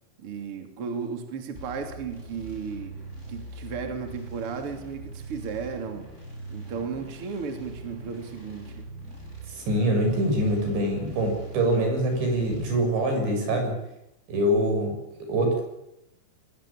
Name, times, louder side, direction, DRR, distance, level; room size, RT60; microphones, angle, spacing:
voice 1, 0.2-3.0 3.3-6.1 6.5-8.9, right 5 dB, 35° right, 5 dB, 3.2 m, -34 dB
sound 1, 1.5-12.7, right 2 dB, 15° right, 7.7 m, -42 dB
voice 2, 9.6-13.7 14.3-15.0 15.3-15.6, right 1 dB, 75° right, 3 dB, 9.2 m, -24 dB
24.0 x 21.5 x 8.8 m, 0.84 s
omnidirectional pair, 5.1 m